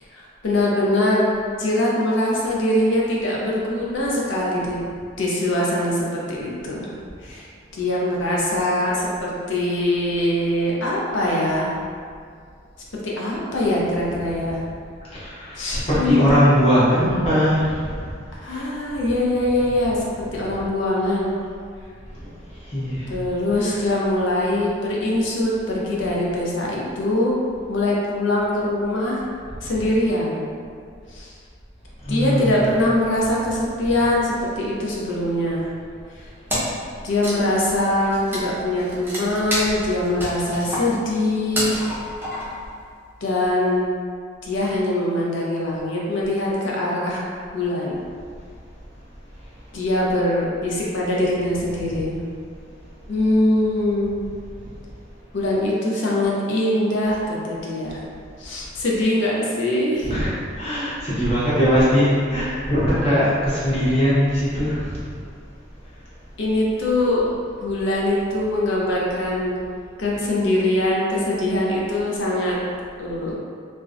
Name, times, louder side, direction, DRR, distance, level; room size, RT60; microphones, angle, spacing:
voice 1, 0.1-1.3 1.6-4.8 5.2-7.0 7.2-7.5 7.7-11.7 13.0-14.6 15.6-16.4 18.4-21.3 23.1-27.3 27.7-29.2 29.6-30.5 31.1-31.3 32.1-35.7 36.1-36.3 37.0-41.8 43.2-43.9 44.4-47.2 47.5-48.0 49.7-52.2 53.1-54.2 55.3-58.0 58.4-60.1 61.9-62.1 66.4-69.6 70.0-72.6 73.0-73.4, left 1 dB, 70° left, -4 dB, 0.5 m, -22 dB
voice 2, 15.1-18.1 18.4-18.7 22.6-23.1 23.6-24.0 29.7-29.9 32.0-32.7 33.8-34.0 51.9-52.0 60.0-65.1, equal, 30° left, -10 dB, 0.8 m, -21 dB
Wood, 36.5-36.9 37.1-42.7, equal, 10° right, 0.5 m, -29 dB
2.5 x 2.0 x 2.4 m, 2.1 s
head